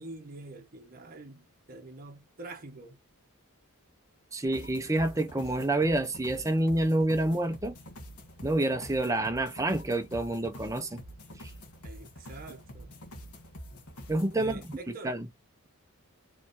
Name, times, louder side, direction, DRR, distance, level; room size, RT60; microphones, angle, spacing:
voice 1, 0.0-3.0 11.8-12.9 14.4-15.2, right 2 dB, 40° right, 1.2 m, -45 dB
voice 2, 4.3-7.7 8.4-11.0 14.1-14.6 15.0-15.3, right 1 dB, 15° right, 0.8 m, -28 dB
sound 1, 4.5-14.8, equal, 80° left, 1.4 m, -46 dB
5.1 x 3.2 x 2.7 m
head